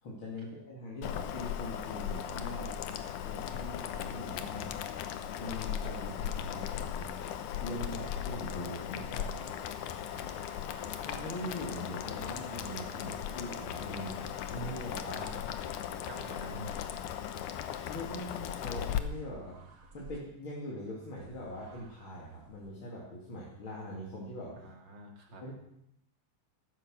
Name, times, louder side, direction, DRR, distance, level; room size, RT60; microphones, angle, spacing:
voice 1, 0.0-2.8 3.2-4.8 5.4-7.1 7.6-9.5 11.0-15.4 17.9-19.6 19.9-24.5 25.4-25.5, left 1 dB, 40° left, -4 dB, 3.1 m, -42 dB
Boiling, 1.0-19.0, left 9 dB, 75° left, 2.4 m, -38 dB
voice 2, 8.8-9.3 16.1-16.9 24.6-25.4, right 1 dB, 35° right, 1 dB, 3.0 m, -47 dB
sound 1, 10.1-18.4 19.0-20.2 21.2-22.7, right 3 dB, 85° right, 4.1 m, -57 dB
14.5 x 13.0 x 6.3 m, 0.80 s
omnidirectional pair, 3.7 m